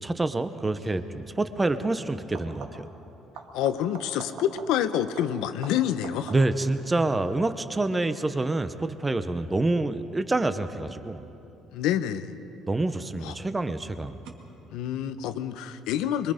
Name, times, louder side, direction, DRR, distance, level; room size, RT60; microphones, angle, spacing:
voice 1, 0.0-2.9 6.3-11.2 12.7-14.1, right 2 dB, 15° right, 10 dB, 0.8 m, -27 dB
sound 1, 0.8-1.0 2.2-3.0 3.3-6.7 12.1-12.7 14.2-14.3, right 4 dB, 75° right, 1.9 m, -45 dB
voice 2, 3.5-6.3 11.7-12.3 13.2-13.3 14.7-16.3, left 10 dB, 90° left, 11 dB, 0.8 m, -27 dB
24.5 x 22.5 x 5.1 m, 2.9 s
cardioid pair, 135°, 0 cm